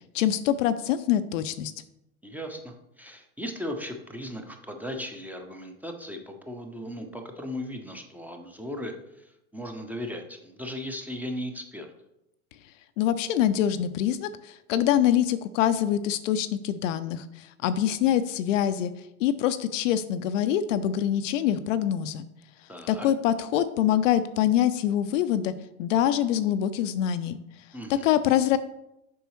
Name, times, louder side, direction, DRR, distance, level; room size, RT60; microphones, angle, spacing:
voice 1, 0.1-1.7 13.0-18.9 19.2-22.2 22.9-25.5 25.8-27.4 27.9-28.6, left 10 dB, 60° left, 11 dB, 0.5 m, -25 dB
voice 2, 2.2-11.9 22.7-23.1 27.7-28.0, equal, 5° right, 4 dB, 0.7 m, -37 dB
6.9 x 5.4 x 3.1 m, 0.85 s
hypercardioid pair, 90°, 44 cm